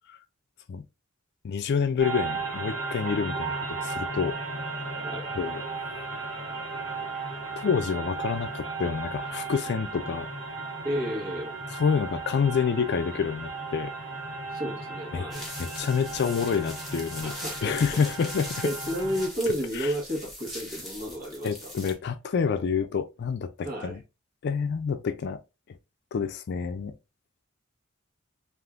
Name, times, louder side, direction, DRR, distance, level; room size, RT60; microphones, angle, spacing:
voice 1, 1.4-4.4 5.3-5.6 7.6-10.3 11.7-13.9 15.1-15.3 15.6-17.3 17.6-18.7 19.8-19.9 21.4-24.0 24.4-25.4 26.1-26.9, left 6 dB, 55° left, 0.4 m, -28 dB
sound 1, 2.0-19.3, right 3 dB, 65° right, 1.2 m, -35 dB
voice 2, 10.8-11.6 14.5-15.4 17.2-17.8 18.6-21.7 23.6-24.0, equal, 45° right, 1.2 m, -32 dB
sound 2, 15.3-21.9, left 1 dB, ahead, 1.0 m, -41 dB
3.5 x 2.5 x 2.4 m
head